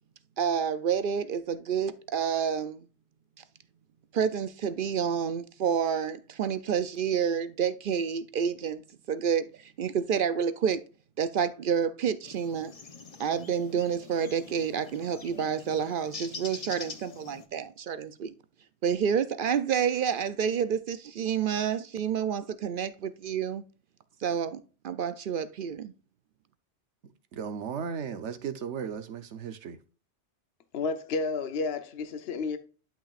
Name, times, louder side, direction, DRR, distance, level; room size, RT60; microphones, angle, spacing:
voice 1, 0.4-2.8 4.1-8.8 9.1-10.8 11.2-12.7 13.2-18.3 18.8-23.6 24.2-25.9, right 7 dB, 60° right, 0.6 m, -29 dB
sound 1, 12.2-17.4, left 4 dB, 35° left, 0.8 m, -44 dB
voice 2, 27.3-29.8, right 7 dB, 85° right, 1.2 m, -35 dB
voice 3, 30.7-32.6, left 4 dB, 65° left, 1.0 m, -31 dB
11.5 x 5.9 x 2.4 m
omnidirectional pair, 1.2 m